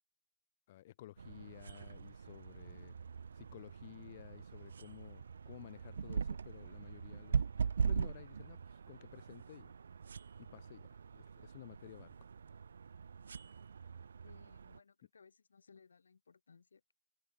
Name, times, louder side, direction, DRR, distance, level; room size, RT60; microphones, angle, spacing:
voice 1, 0.7-2.9 3.3-7.5 7.8-9.7 10.4-12.3, left 14 dB, 25° left, 1.3 m, -54 dB
sound 1, 1.2-14.8, right 6 dB, 55° right, 0.7 m, -41 dB
voice 2, 14.2-16.9, left 5 dB, 65° left, 7.5 m, -63 dB
hypercardioid pair, 175°, 0 cm